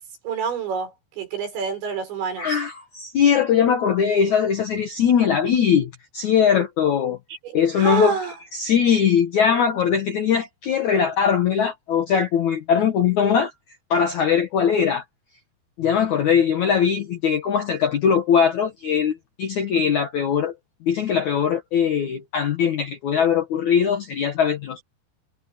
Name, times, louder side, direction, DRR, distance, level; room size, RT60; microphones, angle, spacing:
voice 1, 0.2-2.6 7.4-7.5 7.8-8.3, right 6 dB, 75° right, 8.3 m, -27 dB
voice 2, 2.4-7.2 7.5-8.2 8.5-13.5 13.9-15.0 15.8-20.5 20.8-24.8, left 7 dB, 70° left, 1.8 m, -20 dB
omnidirectional pair, 5.2 m